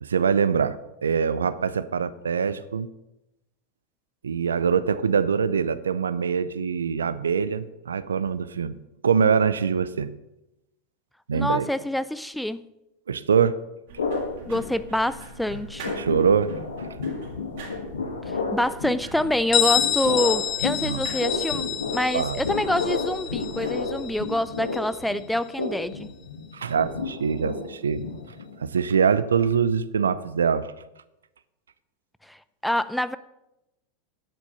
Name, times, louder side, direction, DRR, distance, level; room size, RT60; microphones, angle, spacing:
voice 1, 0.0-2.9 4.2-8.8 9.0-10.1 11.3-11.7 13.1-13.6 16.0-16.5 20.8-21.0 22.1-22.4 26.5-28.0 28.6-30.7, right 6 dB, 75° right, 15 dB, 0.5 m, -23 dB
voice 2, 11.3-12.6 14.5-16.0 18.3-26.1 32.3-32.4 32.6-33.2, left 1 dB, 5° left, 15 dB, 0.4 m, -26 dB
sound 1, 13.9-24.2, right 2 dB, 60° right, 3.1 m, -44 dB
sound 2, 14.0-15.2 15.5-28.6, left 4 dB, 75° left, 1.6 m, -31 dB
Bell, 19.5-25.0, left 10 dB, 40° left, 1.7 m, -28 dB
10.5 x 8.7 x 5.5 m, 0.93 s
figure-of-eight pair, 85°, 0 cm